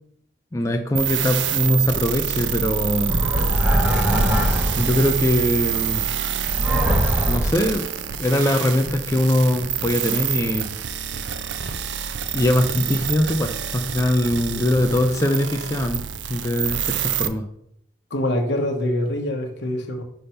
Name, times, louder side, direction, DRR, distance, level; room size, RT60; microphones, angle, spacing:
voice 1, 0.5-3.2 4.8-6.0 7.3-7.9 8.2-10.7 12.3-16.0 16.3-17.4, left 1 dB, 15° left, 4 dB, 0.4 m, -21 dB
sound 1, 1.0-17.3, right 8 dB, 75° right, 0.4 m, -26 dB
sound 2, 3.1-5.1 6.5-7.8, equal, 10° right, 0.8 m, -21 dB
voice 2, 18.1-20.0, left 1 dB, 70° left, 3 dB, 1.1 m, -25 dB
5.5 x 3.4 x 5.6 m, 0.72 s
head